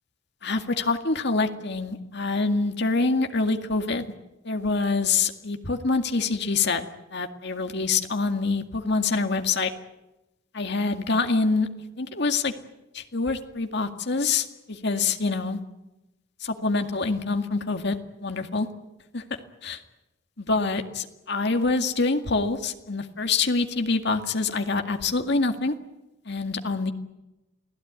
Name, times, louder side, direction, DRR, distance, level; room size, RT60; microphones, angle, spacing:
voice 1, 0.4-4.1 4.4-6.8 7.1-9.7 10.5-11.7 12.0-12.5 12.9-15.6 16.4-18.7 19.1-19.2 19.6-19.8 20.4-25.7 26.3-26.9, left 3 dB, 60° left, 6 dB, 2.0 m, -25 dB
29.0 x 17.5 x 9.6 m, 0.98 s
head